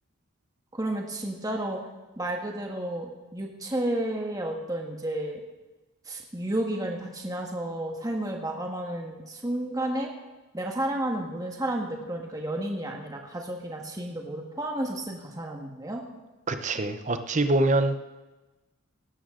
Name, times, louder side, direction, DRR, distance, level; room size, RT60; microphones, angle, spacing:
voice 1, 0.7-1.8 2.2-5.4 6.0-10.1 10.5-16.0, right 1 dB, 15° right, 1 dB, 1.5 m, -32 dB
voice 2, 16.5-18.0, right 2 dB, 35° right, 9 dB, 0.7 m, -24 dB
17.0 x 13.0 x 3.8 m, 1.1 s
head